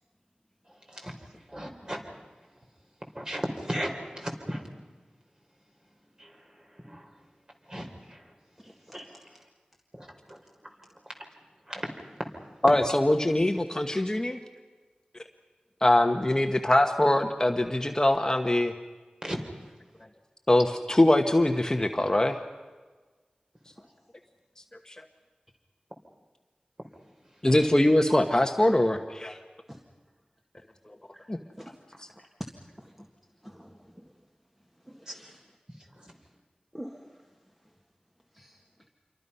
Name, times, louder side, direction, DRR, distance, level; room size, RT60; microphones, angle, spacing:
voice 1, 1.5-2.0 3.2-4.6 6.2-6.3 6.9-7.1 7.7-8.2 8.9-9.1 9.9-10.4 11.7-11.9 19.2-19.4 35.1-35.2, equal, 25° right, 2 dB, 3.9 m, -35 dB
voice 2, 8.6-9.2 29.7-29.8 31.1-31.2 31.6-31.7 32.2-32.3 32.8-33.1 33.4-34.0 34.9-35.4 36.7-37.2 38.3-38.6, equal, 5° right, 1 dB, 1.9 m, -47 dB
voice 3, 12.6-14.4 15.8-18.7 20.5-22.4 24.9-25.0 27.4-29.4 30.9-31.0 31.3-31.4 32.0-32.1, left 1 dB, 25° left, 5 dB, 1.2 m, -23 dB
27.5 x 23.5 x 5.6 m, 1.3 s
wide cardioid pair, 75°, 3 cm